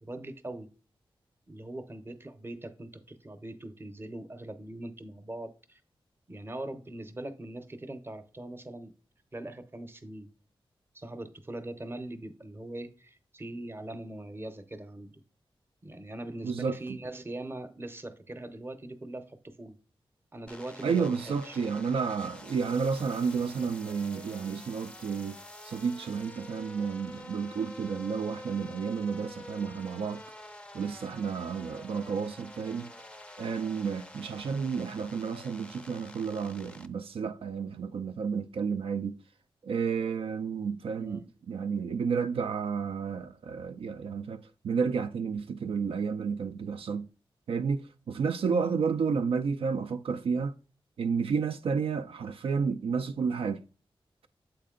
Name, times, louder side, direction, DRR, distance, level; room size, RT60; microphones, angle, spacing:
voice 1, 0.0-0.7 1.5-5.8 6.3-8.9 9.3-10.3 10.9-15.2 15.8-19.8 20.3-21.6 41.0-41.3, right 1 dB, 25° right, 0.7 m, -41 dB
voice 2, 16.4-17.0 20.8-25.4 25.6-30.2 30.7-32.9 33.4-39.2 39.6-47.1 47.5-50.5 51.0-53.6, right 5 dB, 80° right, 0.4 m, -31 dB
sound 1, 20.5-36.9, left 1 dB, 10° left, 0.4 m, -48 dB
7.5 x 4.3 x 3.7 m
wide cardioid pair, 120°, 9 cm